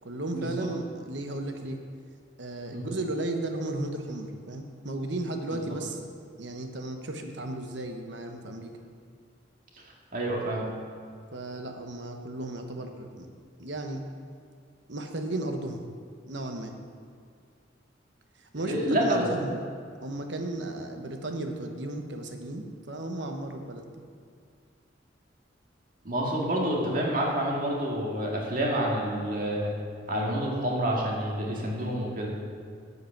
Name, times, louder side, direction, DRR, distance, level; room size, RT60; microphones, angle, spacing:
voice 1, 0.0-1.8 2.4-6.1 6.4-8.7 11.3-13.3 13.6-14.0 14.9-15.8 16.3-16.7 18.4-19.6 20.0-23.9, right 2 dB, 70° right, 4 dB, 1.1 m, -34 dB
voice 2, 10.1-10.7 18.6-19.2 26.0-29.7 30.1-32.3, right 1 dB, 45° right, -2 dB, 2.1 m, -28 dB
9.7 x 8.2 x 6.0 m, 2.2 s
head